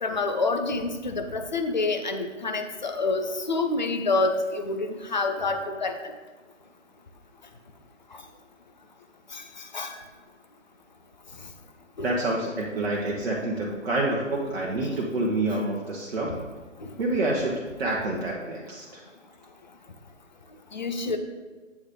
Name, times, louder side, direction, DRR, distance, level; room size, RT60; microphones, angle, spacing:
voice 1, 0.0-6.0 9.3-10.0 12.0-12.1 16.8-16.9 20.7-21.2, left 3 dB, 35° left, 6 dB, 0.5 m, -27 dB
voice 2, 12.0-16.4 17.0-17.5 17.8-19.0, right 2 dB, 55° right, -3 dB, 0.9 m, -27 dB
8.3 x 3.2 x 3.7 m, 1.3 s
figure-of-eight pair, 135°, 39 cm